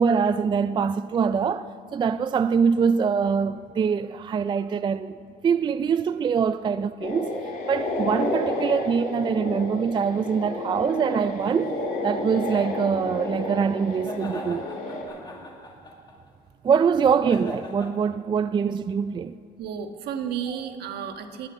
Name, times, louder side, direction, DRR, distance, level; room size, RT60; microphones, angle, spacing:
voice 1, 0.0-5.2 5.4-7.4 7.7-11.7 12.0-14.7 16.6-19.3, right 6 dB, 30° right, 0.3 m, -24 dB
sound 1, 7.0-15.0, left 1 dB, 55° left, 3.4 m, -31 dB
sound 2, 11.4-13.1 13.9-16.3 17.2-17.9, left 2 dB, 25° left, 2.0 m, -42 dB
voice 2, 19.6-21.5, right 8 dB, 70° right, 1.4 m, -32 dB
19.5 x 7.4 x 8.9 m
cardioid pair, 110°, 17 cm